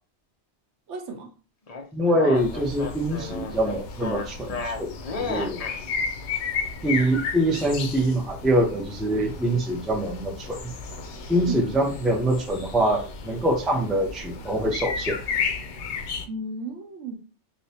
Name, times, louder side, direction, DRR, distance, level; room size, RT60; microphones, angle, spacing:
voice 1, 0.9-1.3 11.5-11.8 16.3-17.2, right 3 dB, 80° right, 3 dB, 0.9 m, -34 dB
sound 1, 1.7-5.8, left 4 dB, 45° left, 0.6 m, -33 dB
voice 2, 1.9-5.6 6.8-10.7 11.3-15.2, right 1 dB, ahead, 0 dB, 0.4 m, -24 dB
sound 2, 2.3-16.2, left 5 dB, 75° left, 0.9 m, -34 dB
4.9 x 2.1 x 2.7 m, 0.35 s
omnidirectional pair, 1.2 m